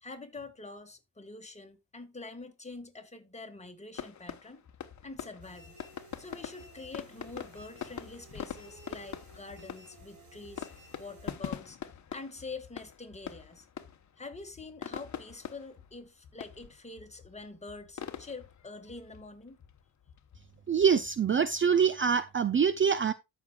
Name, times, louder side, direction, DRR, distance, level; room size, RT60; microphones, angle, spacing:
voice 1, 0.0-4.6 5.0-5.8 6.2-10.7 11.0-11.8 12.1-13.7 14.2-19.6, left 3 dB, 15° left, 1.9 m, -45 dB
sound 1, 3.9-21.6, left 8 dB, 50° left, 1.1 m, -45 dB
sound 2, 5.4-11.3, right 1 dB, 50° right, 4.4 m, -55 dB
voice 2, 20.7-23.1, right 6 dB, 30° right, 0.5 m, -25 dB
14.0 x 6.2 x 2.4 m
cardioid pair, 90°, 38 cm